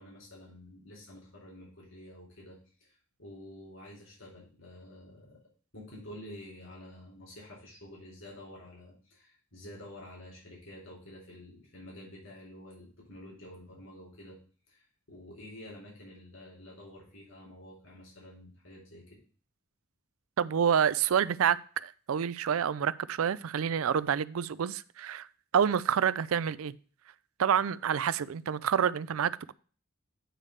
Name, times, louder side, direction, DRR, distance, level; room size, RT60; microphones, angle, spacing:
voice 1, 0.0-5.4 5.7-14.4 14.7-19.2, left 1 dB, 75° left, 4.4 m, -49 dB
voice 2, 20.4-25.3 25.5-26.7 27.4-29.5, right 8 dB, 85° right, 0.4 m, -28 dB
9.0 x 3.3 x 6.5 m
head